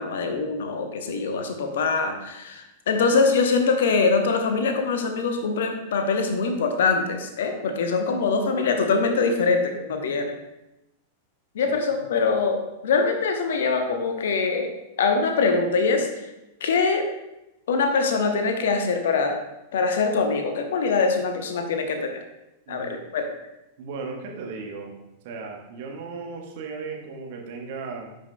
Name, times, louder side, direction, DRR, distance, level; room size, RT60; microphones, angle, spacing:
voice 1, 0.0-10.3 11.5-16.3 16.6-17.1 17.7-19.4 19.7-22.2 22.7-23.3, left 4 dB, 60° left, 5 dB, 0.8 m, -23 dB
voice 2, 22.7-23.1 23.8-24.9 25.2-28.2, right 4 dB, 50° right, 1 dB, 1.2 m, -36 dB
10.5 x 5.4 x 2.2 m, 0.92 s
figure-of-eight pair, 90°, 0 cm